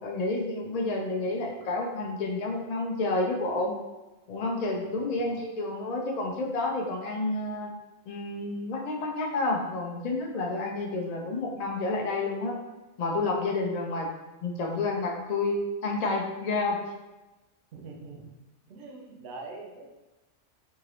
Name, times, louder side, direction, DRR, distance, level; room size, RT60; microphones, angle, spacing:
voice 1, 0.0-3.7 4.3-7.7 8.1-12.6 13.0-14.1 14.4-16.8, left 2 dB, 45° left, -1 dB, 0.5 m, -30 dB
voice 2, 5.0-5.4 17.7-18.3 18.7-19.9, right 3 dB, 65° right, 0 dB, 0.9 m, -44 dB
3.7 x 2.8 x 3.0 m, 1.1 s
omnidirectional pair, 1.3 m